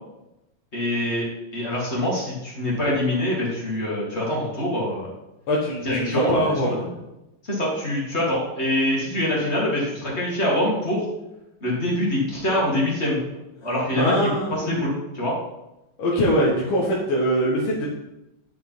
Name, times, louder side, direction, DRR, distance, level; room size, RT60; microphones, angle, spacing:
voice 1, 0.7-5.1 5.8-6.9 7.4-11.0 11.6-13.2 13.6-15.3, left 1 dB, 30° left, -4 dB, 2.5 m, -25 dB
voice 2, 5.5-6.7 14.0-14.7 16.0-17.9, equal, 70° left, -3 dB, 2.0 m, -22 dB
9.9 x 5.5 x 4.6 m, 0.93 s
omnidirectional pair, 2.3 m